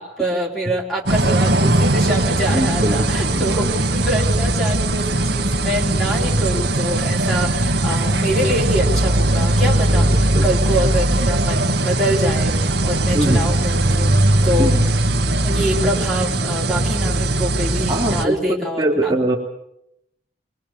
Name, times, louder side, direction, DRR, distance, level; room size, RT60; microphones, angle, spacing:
voice 1, 0.0-14.8 15.4-19.2, equal, ahead, -1 dB, 3.7 m, -25 dB
sound 1, 1.1-18.2, right 1 dB, 65° right, 1.8 m, -19 dB
voice 2, 2.5-3.5 10.1-10.5 13.1-13.5 14.6-14.9 17.9-19.4, right 1 dB, 20° right, -2 dB, 2.8 m, -22 dB
23.0 x 21.0 x 7.1 m, 0.80 s
head